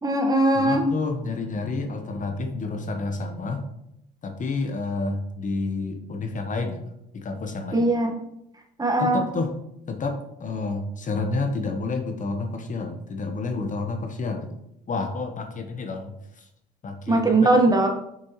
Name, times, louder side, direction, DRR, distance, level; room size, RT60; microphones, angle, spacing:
voice 1, 0.0-0.8 7.7-8.1 8.8-9.2 17.1-17.9, right 2 dB, 20° right, 2 dB, 1.4 m, -20 dB
voice 2, 0.5-3.7 4.2-6.8 7.1-7.9 9.0-9.5 9.9-14.6 14.9-16.5 16.8-17.4, left 3 dB, 40° left, 5 dB, 1.1 m, -29 dB
6.1 x 6.1 x 3.1 m, 0.80 s
hypercardioid pair, 65°, 20 cm